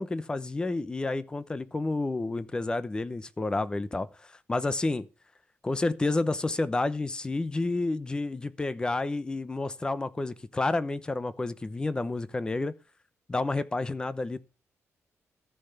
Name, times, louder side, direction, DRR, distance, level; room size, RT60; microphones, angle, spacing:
voice 1, 0.0-4.1 4.5-5.1 5.6-12.7 13.3-14.4, left 2 dB, 15° left, 0.8 m, -30 dB
14.0 x 5.7 x 8.0 m
wide cardioid pair, 150°, 5 cm